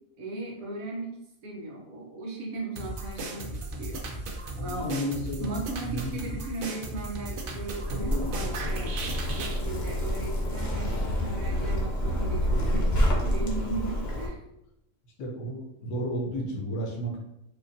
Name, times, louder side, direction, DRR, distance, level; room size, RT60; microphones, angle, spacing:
voice 1, 0.2-1.2 1.4-4.0 4.6-5.0 5.4-8.9 9.2-14.4, right 2 dB, 70° right, -1 dB, 1.2 m, -37 dB
sound 1, 2.8-9.6, right 2 dB, 85° right, 0.4 m, -36 dB
voice 2, 4.6-5.5 5.8-6.1 15.2-17.2, equal, 90° left, 0 dB, 1.3 m, -32 dB
Zipper (clothing), 7.6-14.3, equal, 50° left, 0.9 m, -28 dB
4.9 x 2.5 x 2.6 m, 0.85 s
omnidirectional pair, 1.5 m